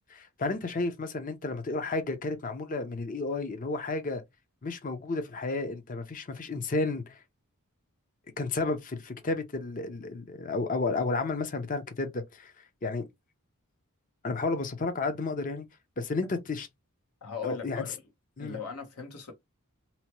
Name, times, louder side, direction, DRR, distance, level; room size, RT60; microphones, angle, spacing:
voice 1, 0.1-4.2 4.6-7.2 8.4-12.5 12.8-13.0 14.2-15.7 16.0-16.7 17.4-17.8 18.4-18.6, left 3 dB, 35° left, 0.6 m, -32 dB
voice 2, 17.2-18.0 18.4-19.3, left 6 dB, 85° left, 1.1 m, -38 dB
2.9 x 2.1 x 2.9 m
head